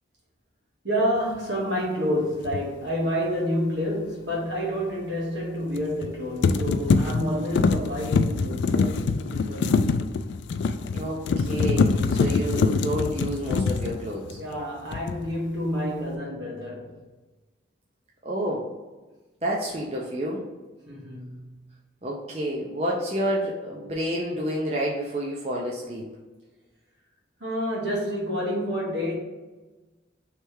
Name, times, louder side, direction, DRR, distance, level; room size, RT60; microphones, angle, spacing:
voice 1, 0.8-9.9 14.4-16.9 20.9-21.5 27.4-29.1, equal, 75° right, 1.4 m, -29 dB
sound 1, 2.4-2.6 5.8-6.1 6.4-14.6 14.9-15.4, left 4 dB, 80° left, 0.3 m, -24 dB
voice 2, 10.9-14.4 18.2-18.7 19.4-20.4 22.0-26.0, equal, 35° right, 0.5 m, -29 dB
3.3 x 3.2 x 4.7 m
head